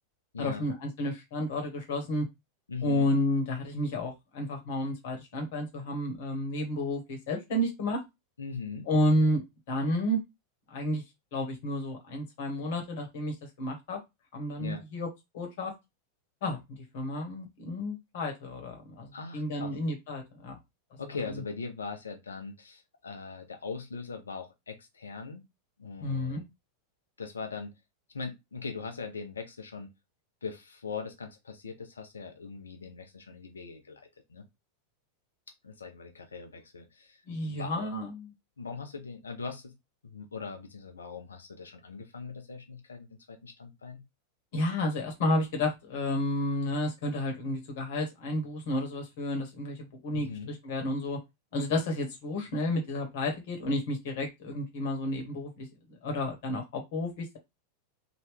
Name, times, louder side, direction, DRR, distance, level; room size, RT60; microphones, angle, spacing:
voice 1, 0.4-2.3 2.8-8.0 8.9-9.4 9.7-10.2 10.7-11.0 11.3-14.0 14.3-15.1 15.3-15.7 16.4-20.6 26.0-26.4 37.3-38.3 44.5-51.2 51.5-55.7 56.0-57.4, left 1 dB, 55° left, 3 dB, 1.3 m, -31 dB
voice 2, 2.7-3.1 8.4-8.9 14.6-14.8 19.1-19.8 21.0-25.4 25.8-26.4 27.2-27.7 28.1-29.9 30.4-34.4 35.6-37.9 38.6-39.7 40.0-44.0 50.1-50.5, left 5 dB, 80° left, 5 dB, 0.7 m, -40 dB
2.9 x 2.6 x 3.3 m, 0.21 s
figure-of-eight pair, 90°, 0 cm